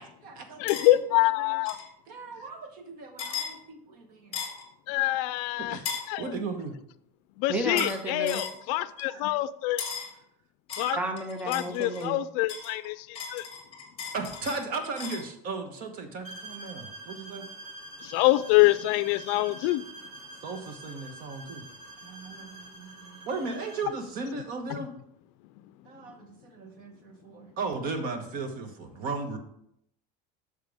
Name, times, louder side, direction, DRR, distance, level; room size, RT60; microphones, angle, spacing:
voice 1, 0.0-0.8 1.4-1.6 2.1-4.4 5.6-5.9 6.2-6.7 9.1-9.2 14.1-17.5 20.4-21.6 22.1-24.9 25.9-29.4, right 4 dB, 45° right, 6 dB, 1.3 m, -36 dB
voice 2, 0.6-1.8 4.9-5.8 6.1-6.3 7.4-9.8 10.8-11.0 11.5-13.5 18.0-19.9 24.7-24.9, left 17 dB, 65° left, 15 dB, 0.4 m, -25 dB
sound 1, 0.7-0.9 1.7-1.9 3.2-3.5 4.3-4.7 5.9-6.1 7.8-8.0 8.3-8.6 9.8-10.1 10.7-12.1 12.5-15.3, left 6 dB, 30° left, 1.7 m, -36 dB
voice 3, 7.5-8.4 10.9-12.2, right 1 dB, 5° right, 6 dB, 0.6 m, -32 dB
sound 2, 7.6-8.0 10.8-11.1, right 2 dB, 60° right, 1.8 m, -36 dB
sound 3, 16.2-24.0, right 2 dB, 85° right, 3.1 m, -46 dB
9.1 x 6.5 x 3.5 m, 0.73 s
cardioid pair, 160°, 20 cm